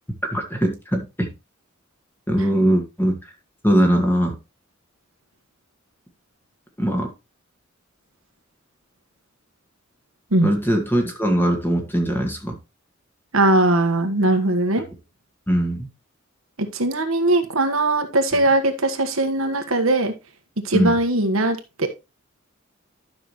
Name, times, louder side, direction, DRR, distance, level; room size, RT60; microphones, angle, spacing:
voice 1, 0.3-1.3 2.3-3.2 3.6-4.4 6.8-7.1 10.4-12.5 15.5-15.9 20.7-21.0, equal, 10° left, 1.8 m, -20 dB
voice 2, 13.3-14.8 16.6-20.1 20.6-21.9, right 2 dB, 85° right, 1.5 m, -20 dB
12.0 x 6.1 x 3.1 m
head